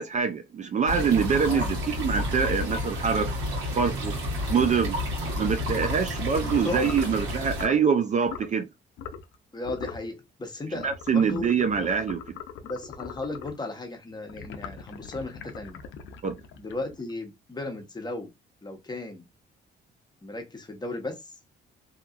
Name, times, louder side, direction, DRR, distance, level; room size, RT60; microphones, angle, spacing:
voice 1, 0.0-3.3 3.7-4.2 4.5-5.0 5.3-8.7 10.8-12.2 16.2-16.4, right 6 dB, 40° right, 0.4 m, -25 dB
sound 1, 0.9-7.7, left 1 dB, 80° right, 1.3 m, -30 dB
voice 2, 6.5-6.9 9.5-11.9 12.6-15.8 16.6-18.3 18.6-19.3 20.2-21.3, left 2 dB, 20° left, 0.9 m, -36 dB
sound 2, 6.7-7.1 7.5-7.9 8.2-8.5 9.0-9.3 9.6-10.1 10.8-13.6 14.3-17.1, left 7 dB, 75° left, 0.5 m, -41 dB
2.8 x 2.3 x 2.4 m
cardioid pair, 90°, 20 cm